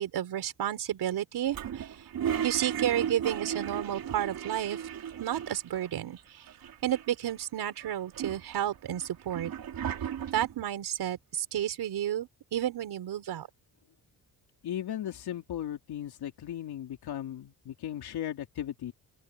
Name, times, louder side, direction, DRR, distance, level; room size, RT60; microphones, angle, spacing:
voice 1, 0.0-2.1 2.4-4.8 5.2-6.5 6.8-9.5 10.3-13.5, right 11 dB, 85° right, 4.6 m, -31 dB
Toilet flush, 1.5-5.9 6.2-6.3 6.5-7.3 7.8-10.6, right 9 dB, 65° right, 3.1 m, -36 dB
voice 2, 14.6-18.9, left 11 dB, 85° left, 3.8 m, -36 dB
open air
cardioid pair, 135°, 38 cm